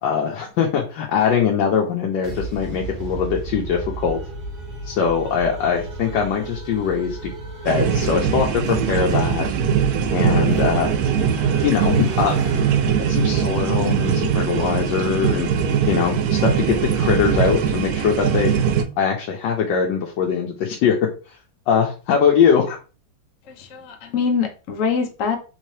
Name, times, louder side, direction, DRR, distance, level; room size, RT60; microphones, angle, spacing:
voice 1, 0.0-4.2 4.8-7.3 7.6-9.6 10.1-11.0 11.6-12.4 13.1-15.5 15.8-18.5 19.0-21.4 21.7-22.8, left 7 dB, 75° left, 0 dB, 1.3 m, -21 dB
sound 1, 2.2-13.6, right 3 dB, 50° right, 1.0 m, -34 dB
sound 2, 7.7-18.8, right 7 dB, 75° right, 0.9 m, -21 dB
voice 2, 23.5-25.4, left 5 dB, 60° left, 3 dB, 0.9 m, -24 dB
3.6 x 3.2 x 2.7 m, 0.34 s
omnidirectional pair, 2.0 m